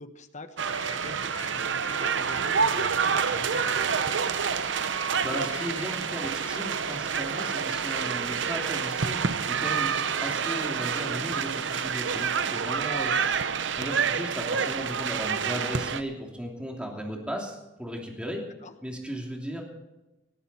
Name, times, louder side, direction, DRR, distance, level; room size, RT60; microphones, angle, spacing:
voice 1, 0.0-4.4 18.6-18.7, left 1 dB, 40° left, 9 dB, 1.1 m, -46 dB
sound 1, 0.6-16.0, right 6 dB, 70° right, 0.7 m, -28 dB
sound 2, 0.7-10.4, left 1 dB, 65° left, 2.2 m, -46 dB
voice 2, 5.2-9.9 10.2-13.2 13.8-18.4 18.8-19.6, equal, 5° right, 0 dB, 2.9 m, -36 dB
19.0 x 14.0 x 4.3 m, 0.99 s
head